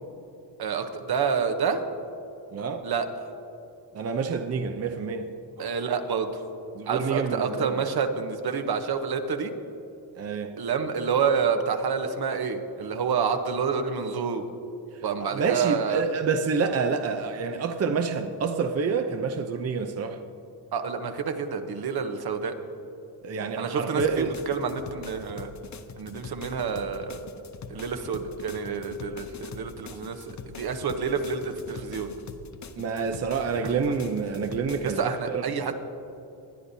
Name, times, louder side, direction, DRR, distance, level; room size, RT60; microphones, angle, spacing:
voice 1, 0.6-1.8 2.8-3.3 5.6-6.4 6.9-9.5 10.6-14.4 15.0-16.0 20.7-22.5 23.6-25.5 26.0-27.3 27.7-32.1 33.6-33.9 34.8-35.7, right 6 dB, 60° right, 1.1 m, -28 dB
voice 2, 2.5-2.9 3.9-5.3 6.7-7.7 10.2-10.5 15.3-20.2 23.2-24.3 32.8-35.7, right 5 dB, 35° right, 0.6 m, -28 dB
sound 1, 24.0-35.0, left 5 dB, 45° left, 0.7 m, -43 dB
20.5 x 9.9 x 2.8 m
cardioid pair, 95°, 42 cm